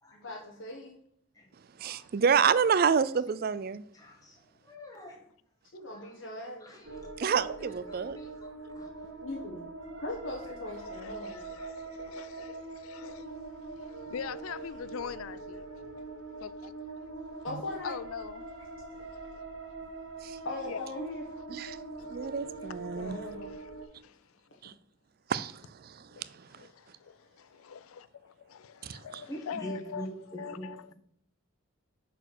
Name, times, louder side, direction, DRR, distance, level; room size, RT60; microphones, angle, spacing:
voice 1, 0.1-1.0 5.7-6.9 9.2-9.7 10.0-11.4 12.3-12.6 17.4-18.0 20.4-21.2 22.9-23.5, left 1 dB, 70° left, 1.1 m, -40 dB
voice 2, 1.8-3.8 7.2-8.2 20.2-20.4 21.5-21.8 22.1-23.2 24.6-24.7 25.3-25.9 28.8-29.0, right 6 dB, 45° right, 0.4 m, -28 dB
voice 3, 3.9-5.2 5.9-6.2 6.6-7.1 7.9-8.9 10.8-11.4 11.9-12.0 21.6-21.7 29.3-30.9, equal, 15° left, 1.3 m, -45 dB
sound 1, 6.8-23.9, right 3 dB, 65° right, 2.1 m, -43 dB
voice 4, 10.9-15.9 16.4-17.1 17.8-18.6 18.9-19.5 20.7-20.9 22.0-22.1 22.7-23.5 24.0-24.2 26.1-30.1 30.4-30.9, left 7 dB, 85° left, 0.4 m, -44 dB
6.3 x 4.6 x 6.2 m
head